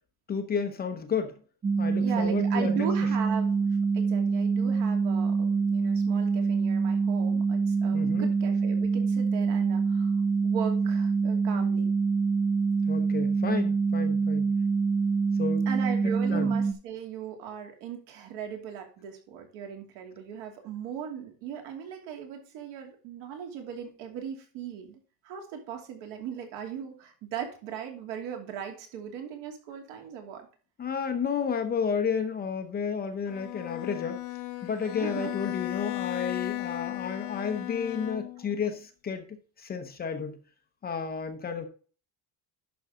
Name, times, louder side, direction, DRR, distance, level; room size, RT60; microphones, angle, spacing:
voice 1, 0.3-1.4 1.8-2.9 7.9-8.3 12.9-14.5 15.4-15.7 16.3-16.5 30.8-34.2 34.6-40.4 40.8-41.7, left 6 dB, 20° left, 6 dB, 0.8 m, -32 dB
sound 1, 1.6-16.7, right 5 dB, 20° right, 0.8 m, -25 dB
voice 2, 2.0-10.1 10.4-11.9 15.7-25.0 25.2-30.5 35.0-35.3, right 8 dB, 75° right, 4 dB, 2.9 m, -38 dB
Bowed string instrument, 33.3-38.6, left 18 dB, 80° left, 1.4 m, -35 dB
11.5 x 6.2 x 3.7 m, 0.39 s
cardioid pair, 175°, 45 cm